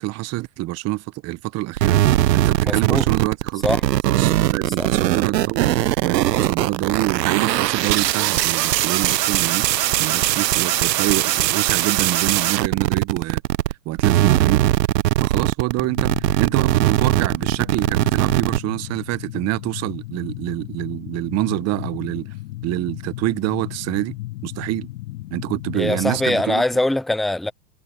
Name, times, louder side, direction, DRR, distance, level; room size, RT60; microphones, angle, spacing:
voice 1, 0.0-2.0 2.3-3.7 4.0-5.7 6.0-9.7 10.0-13.4 13.8-14.6 15.2-22.3 22.6-24.2 24.4-24.9 25.3-26.6, right 18 dB, 30° right, 1.1 m, -26 dB
sound 1, 1.8-13.7 14.0-18.6, right 14 dB, 80° right, 0.9 m, -20 dB
voice 2, 2.7-3.0 3.6-3.8 4.8-4.9 25.7-27.5, left 2 dB, ahead, 0.6 m, -22 dB
sound 2, 15.8-26.3, left 18 dB, 60° left, 3.5 m, -35 dB
hypercardioid pair, 120°, 49 cm